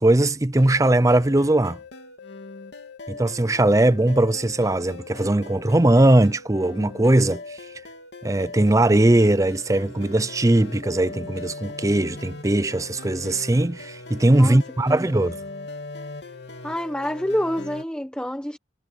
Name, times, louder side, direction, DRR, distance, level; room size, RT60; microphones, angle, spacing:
voice 1, 0.0-1.8 3.1-7.6 8.2-15.3, right 1 dB, 20° right, 0.5 m, -19 dB
sound 1, 0.6-17.8, left 3 dB, 75° left, 3.1 m, -40 dB
voice 2, 14.3-15.3 16.6-18.6, equal, 5° left, 1.2 m, -28 dB
head